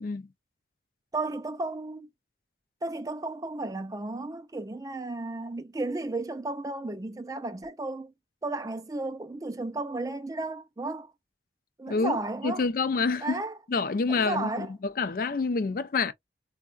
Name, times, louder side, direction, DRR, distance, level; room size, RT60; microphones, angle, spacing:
voice 1, 1.1-2.1 2.8-8.1 8.4-11.1 11.8-12.6 13.2-13.6 14.1-14.7, right 2 dB, 20° right, 0.3 m, -33 dB
voice 2, 11.9-12.2 12.4-13.4 13.7-16.1, left 4 dB, 50° left, 0.4 m, -27 dB
4.5 x 2.1 x 2.4 m
head